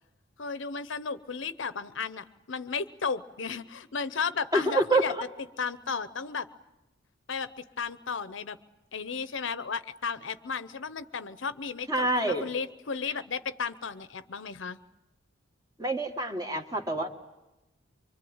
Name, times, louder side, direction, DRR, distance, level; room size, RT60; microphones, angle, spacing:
voice 1, 0.4-5.1 5.6-6.5 7.3-8.6 8.9-14.8, left 5 dB, 70° left, 14 dB, 0.8 m, -34 dB
voice 2, 4.5-5.0 11.9-12.5 15.8-17.1, right 2 dB, 20° right, 5 dB, 1.6 m, -26 dB
25.0 x 24.5 x 8.8 m, 1.0 s
head